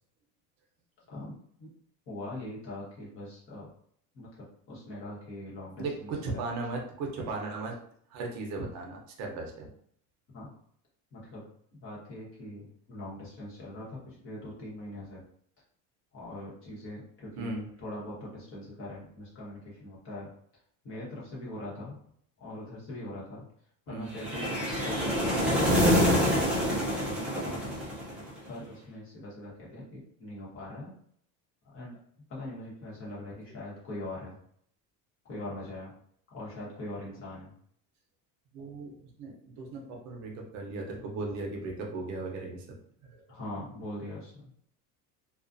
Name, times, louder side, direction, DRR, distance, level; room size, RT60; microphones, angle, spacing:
voice 1, 1.1-1.7 2.1-3.7 4.1-6.4 10.3-10.5 11.1-11.4 11.7-15.2 16.1-17.5 17.8-20.3 20.8-22.0 22.4-23.4 23.9-24.5 24.8-27.7 28.5-30.9 31.7-32.0 32.3-34.4 35.3-35.9 36.3-37.5 43.3-44.5, left 1 dB, 35° left, -6 dB, 1.1 m, -42 dB
voice 2, 5.8-7.8 8.1-9.7 17.4-17.7 23.9-24.1 28.1-28.2 38.5-43.4, right 3 dB, 50° right, 1 dB, 0.7 m, -37 dB
sound 1, 24.1-28.4, equal, 5° right, 0.5 m, -26 dB
2.4 x 2.3 x 2.5 m, 0.64 s
cardioid pair, 160°, 37 cm